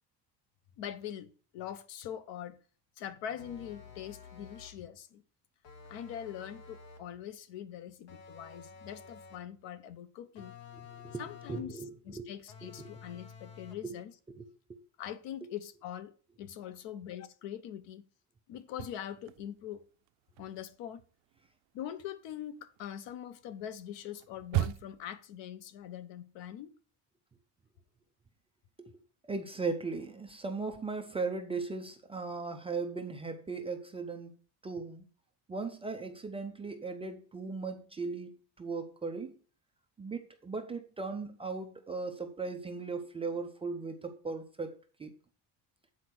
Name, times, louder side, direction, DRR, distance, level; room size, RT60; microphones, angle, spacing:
voice 1, 0.8-2.6 3.0-5.2 5.9-10.6 11.2-11.8 12.1-14.1 15.0-18.0 18.5-19.8 20.4-21.0 21.7-26.8, left 10 dB, 80° left, 1.0 m, -43 dB
sound 1, 3.4-4.9 5.6-7.2 8.1-9.5 10.4-11.8 12.5-13.9, left 6 dB, 55° left, 1.4 m, -51 dB
voice 2, 10.7-12.3 12.6-12.9 13.8-13.9 14.3-14.8 28.8-28.9 29.2-34.4 34.6-35.0 35.5-39.3 40.0-45.1, right 4 dB, 15° right, 0.3 m, -38 dB
sound 2, 18.6-19.8 20.1-25.2, right 15 dB, 75° right, 0.6 m, -38 dB
8.3 x 4.3 x 6.1 m
cardioid pair, 180°, 43 cm